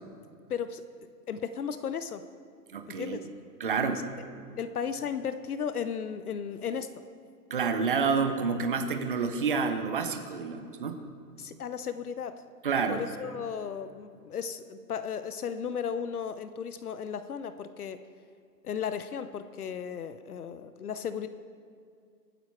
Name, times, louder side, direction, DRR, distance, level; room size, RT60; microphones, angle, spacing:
voice 1, 0.5-0.8 1.3-2.2 2.9-3.2 3.9-4.3 4.6-6.9 11.4-12.4 12.9-18.0 18.6-21.3, left 7 dB, 60° left, 11 dB, 0.8 m, -35 dB
voice 2, 2.7-3.2 3.6-4.0 7.5-11.0 12.6-13.0, right 5 dB, 35° right, 7 dB, 0.7 m, -29 dB
24.0 x 9.4 x 4.5 m, 2.2 s
hypercardioid pair, 175°, 49 cm